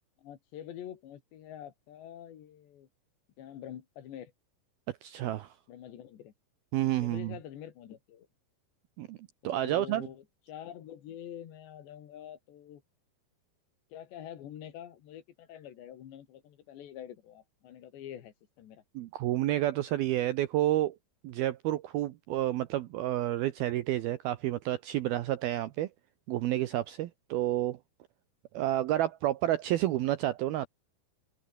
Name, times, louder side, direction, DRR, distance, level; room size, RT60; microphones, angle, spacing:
voice 1, 0.2-2.9 3.4-4.3 5.7-6.3 7.0-8.3 9.4-12.8 13.9-18.8, left 10 dB, 65° left, 4.3 m, -46 dB
voice 2, 5.0-5.5 6.7-7.3 9.0-9.2 9.4-10.1 19.0-21.0 21.2-25.9 26.3-27.8 28.5-30.7, right 14 dB, 85° right, 2.1 m, -30 dB
open air
omnidirectional pair, 5.7 m